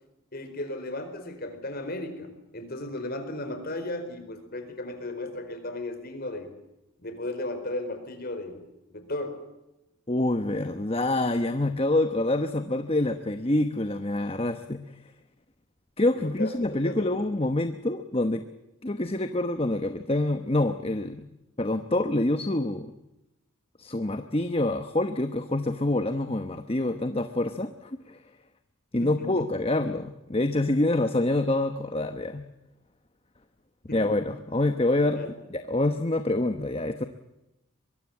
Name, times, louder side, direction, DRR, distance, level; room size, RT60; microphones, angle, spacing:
voice 1, 0.3-6.5 7.0-9.4 16.2-17.2 29.0-29.4 33.9-34.2 35.1-35.3, left 1 dB, 45° left, 8 dB, 4.6 m, -35 dB
voice 2, 10.1-14.8 16.0-18.4 18.8-21.3 21.6-22.9 23.8-28.2 28.9-32.4 33.9-35.2 35.5-37.0, left 2 dB, 25° left, 8 dB, 1.0 m, -26 dB
23.5 x 23.0 x 7.3 m, 0.92 s
head